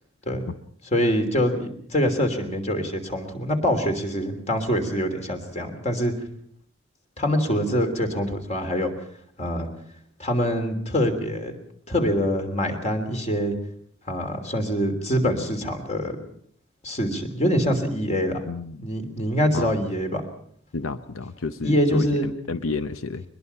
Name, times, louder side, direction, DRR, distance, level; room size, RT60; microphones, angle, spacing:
voice 1, 0.9-6.1 7.2-8.9 9.4-9.7 10.2-11.5 11.9-13.5 14.1-16.2 16.8-18.4 18.8-20.2 21.6-22.3, equal, 35° left, 5 dB, 3.2 m, -24 dB
voice 2, 18.5-18.8 19.5-19.8 20.7-23.2, left 3 dB, 90° left, 11 dB, 0.8 m, -31 dB
22.5 x 21.0 x 5.7 m, 0.63 s
head